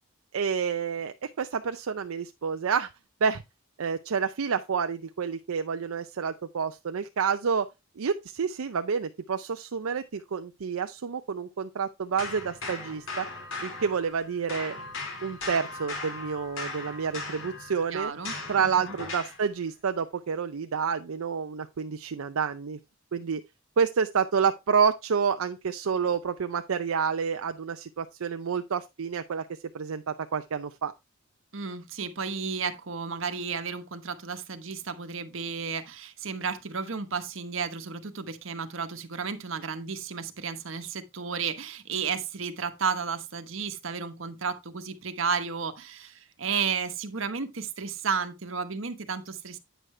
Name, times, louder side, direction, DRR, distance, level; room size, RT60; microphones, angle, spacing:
voice 1, 0.3-2.9 3.2-3.4 3.8-7.7 8.0-13.3 13.6-14.8 15.2-18.1 18.5-22.8 23.1-23.4 23.8-29.5 29.7-30.9, right 6 dB, 85° right, 0.5 m, -29 dB
sound 1, 12.2-14.2 14.5-19.4, left 3 dB, 65° left, 3.0 m, -38 dB
voice 2, 17.9-18.9 31.5-49.6, right 5 dB, 70° right, 1.1 m, -33 dB
9.0 x 6.5 x 3.2 m
head